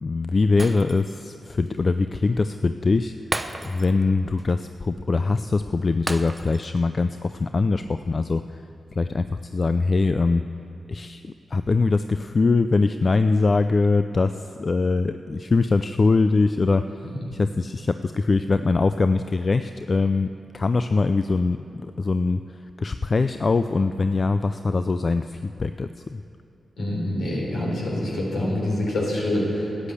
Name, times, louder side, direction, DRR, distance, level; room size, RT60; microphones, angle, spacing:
voice 1, 0.0-3.1 3.6-8.6 9.0-10.4 10.9-16.8 17.3-21.6 22.0-22.4 22.8-26.2, left 3 dB, 50° left, 10 dB, 0.4 m, -22 dB
Shatter, 0.6-1.3 1.7-1.8 3.3-4.1 4.4-4.5 6.1-6.8 7.1-7.3, right 2 dB, 25° right, 0.8 m, -33 dB
voice 2, 26.8-29.9, left 1 dB, 75° left, -3 dB, 3.6 m, -26 dB
13.0 x 8.5 x 8.3 m, 2.6 s
supercardioid pair, 45°, 0 cm